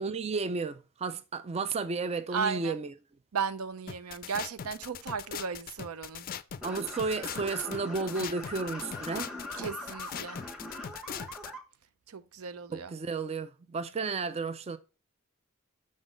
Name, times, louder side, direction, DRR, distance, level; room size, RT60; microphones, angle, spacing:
voice 1, 0.0-2.9 6.6-9.3 12.7-14.8, right 4 dB, 30° right, 0.4 m, -33 dB
voice 2, 2.3-2.8 3.3-6.3 9.6-10.4 12.1-12.9 14.0-14.2, right 6 dB, 85° right, 0.6 m, -35 dB
sound 1, 3.9-11.5, left 8 dB, 45° left, 0.4 m, -40 dB
sound 2, 6.6-11.6, left 1 dB, ahead, 1.2 m, -41 dB
6.2 x 4.0 x 4.9 m
head